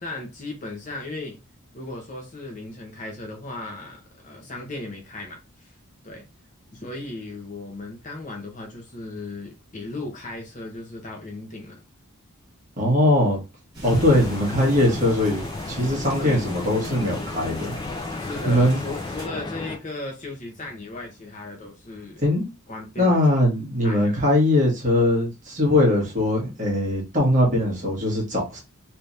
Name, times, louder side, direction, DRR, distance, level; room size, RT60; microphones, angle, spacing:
voice 1, 0.0-1.4 1.7-5.7 6.0-6.2 6.7-11.8 16.1-16.5 18.2-22.2 22.7-23.2 23.8-24.1, left 2 dB, 35° left, 0.9 m, -36 dB
voice 2, 12.8-13.4 13.8-17.7 18.4-18.8 22.2-22.5 23.0-28.6, left 1 dB, 35° right, 1.4 m, -21 dB
sound 1, 13.7-19.3, right 1 dB, 20° right, 1.8 m, -41 dB
sound 2, 13.8-19.8, left 2 dB, 20° left, 0.4 m, -33 dB
3.3 x 3.1 x 2.7 m
head